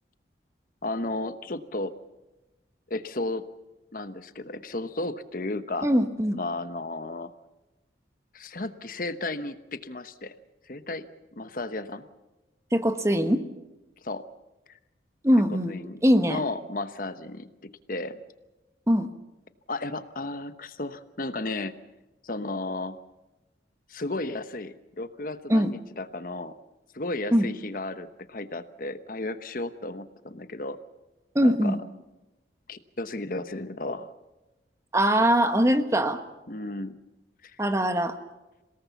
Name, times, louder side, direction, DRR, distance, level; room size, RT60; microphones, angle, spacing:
voice 1, 0.8-1.9 2.9-3.4 3.9-5.9 6.3-7.3 8.3-10.3 10.7-11.0 11.4-12.0 14.0-14.2 15.5-16.0 16.3-18.2 19.7-21.7 22.2-23.0 23.9-26.5 26.9-30.8 31.4-31.8 32.7-34.1 36.5-36.9 37.4-37.6, left 2 dB, 50° left, 11 dB, 1.0 m, -34 dB
voice 2, 5.8-6.4 12.7-13.4 15.2-15.7 16.0-16.4 18.9-19.1 25.5-25.7 27.3-27.5 31.3-31.8 34.9-36.2 37.6-38.2, equal, 15° right, 8 dB, 1.3 m, -22 dB
27.5 x 18.0 x 7.1 m, 1.1 s
head